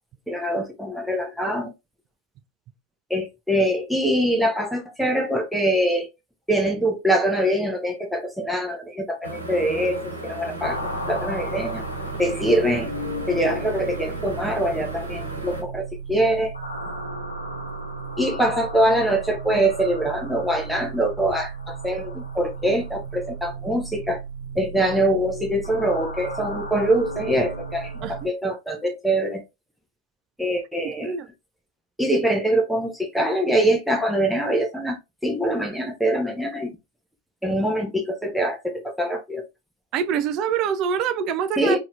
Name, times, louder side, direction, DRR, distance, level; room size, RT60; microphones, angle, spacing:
voice 1, 0.3-1.7 3.1-6.1 6.5-10.8 11.1-11.8 12.2-12.9 13.3-16.5 18.2-24.2 24.6-29.4 30.4-31.1 32.0-36.7 37.4-39.4 41.6-41.8, right 1 dB, ahead, 0.8 m, -23 dB
sound 1, 9.2-15.6, right 1 dB, 80° right, 1.1 m, -35 dB
sound 2, 10.6-28.2, right 3 dB, 80° left, 0.8 m, -34 dB
voice 2, 39.9-41.8, right 7 dB, 35° right, 0.4 m, -25 dB
4.0 x 2.8 x 2.4 m
figure-of-eight pair, 90°, 0 cm